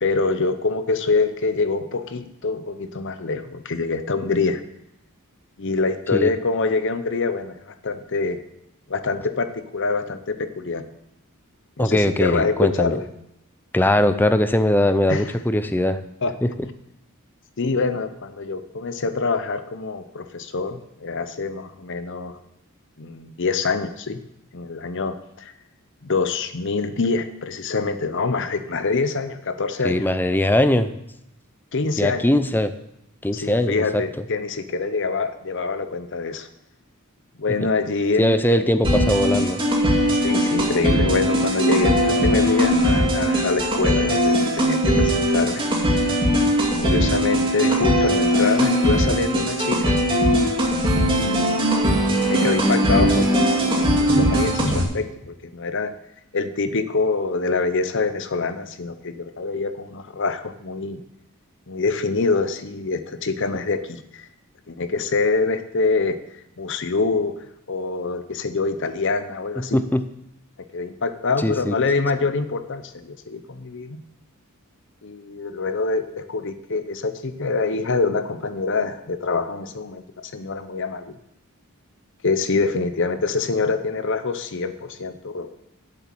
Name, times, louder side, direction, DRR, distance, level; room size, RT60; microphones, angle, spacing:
voice 1, 0.0-4.6 5.6-8.4 8.9-10.9 11.8-13.0 15.1-15.2 16.2-16.3 17.6-22.4 23.0-24.2 24.5-25.5 26.0-30.1 31.7-32.3 33.3-36.5 37.4-38.7 40.1-45.7 46.8-50.0 51.2-51.7 52.3-55.9 56.3-61.0 61.7-64.3 64.7-66.2 66.6-67.3 67.7-69.8 70.7-74.0 75.0-81.2 82.2-85.5, left 4 dB, 60° left, 10 dB, 0.8 m, -25 dB
voice 2, 11.8-13.0 13.7-16.0 16.4-16.5 29.8-30.9 32.0-32.7 33.2-34.0 37.6-37.7 38.2-39.6 69.6-70.1 71.4-71.8, left 1 dB, 10° left, 10 dB, 0.5 m, -20 dB
sound 1, 38.8-54.8, equal, 25° right, 2.4 m, -20 dB
8.0 x 7.3 x 7.7 m, 0.82 s
head